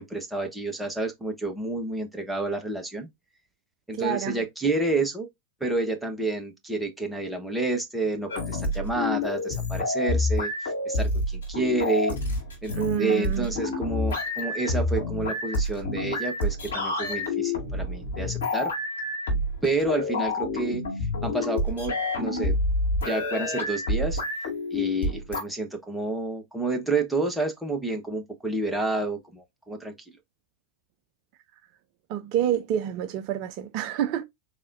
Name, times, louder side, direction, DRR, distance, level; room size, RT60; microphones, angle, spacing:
voice 1, 0.0-3.1 3.9-5.3 5.6-12.2 12.6-12.7 13.0-18.7 19.6-20.8 21.2-22.6 23.1-24.2 24.7-29.9, right 2 dB, 5° right, 1.1 m, -29 dB
voice 2, 3.9-4.4 12.7-13.6 32.1-34.2, right 10 dB, 45° right, 0.5 m, -28 dB
sound 1, 8.3-25.4, left 2 dB, 60° left, 2.2 m, -28 dB
4.1 x 3.5 x 2.5 m
figure-of-eight pair, 90°, 0 cm